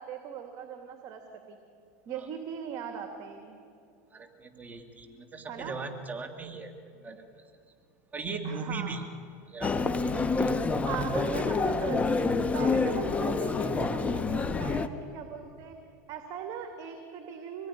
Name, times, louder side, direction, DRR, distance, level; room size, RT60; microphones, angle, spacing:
voice 1, 0.0-1.6 2.1-3.6 5.5-5.8 8.4-9.0 10.8-15.7 16.1-17.7, right 7 dB, 45° right, 5 dB, 2.7 m, -39 dB
voice 2, 4.1-6.7 7.0-7.5 8.1-9.1 9.4-10.7, right 4 dB, 20° right, 5 dB, 2.2 m, -39 dB
Human voice, 9.6-14.9, left 4 dB, 15° left, 1.4 m, -27 dB
26.0 x 20.0 x 10.0 m, 2.5 s
supercardioid pair, 120°, 8 cm